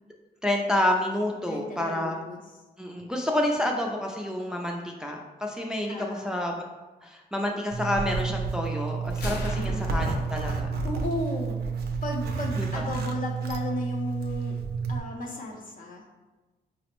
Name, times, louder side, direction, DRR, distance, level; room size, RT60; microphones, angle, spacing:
voice 1, 0.4-2.2 2.8-6.0 6.2-6.5 7.0-10.7 12.6-12.8, left 1 dB, 5° right, 0 dB, 0.3 m, -29 dB
voice 2, 1.5-2.6 5.9-6.5 9.5-10.1 10.8-11.6 12.0-14.6 14.9-16.0, left 2 dB, 55° left, 1 dB, 0.6 m, -34 dB
Zipper (clothing), 7.7-15.0, right 5 dB, 75° right, 0.4 m, -30 dB
Gunshot gunfire, 9.1-11.1, equal, 90° left, 0.7 m, -37 dB
4.9 x 2.0 x 3.0 m, 1.2 s
cardioid pair, 110°, 16 cm